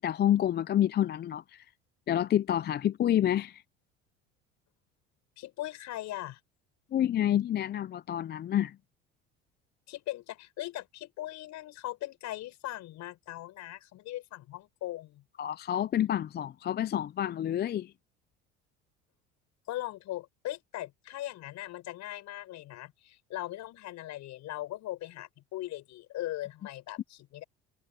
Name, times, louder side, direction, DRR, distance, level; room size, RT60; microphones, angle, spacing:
voice 1, 0.0-1.6 2.1-3.6 6.9-8.8 15.4-17.9, left 11 dB, 30° left, 0.5 m, -28 dB
voice 2, 5.4-6.4 9.9-15.2 19.7-27.4, left 15 dB, 60° left, 6.5 m, -39 dB
hypercardioid pair, 75°, 31 cm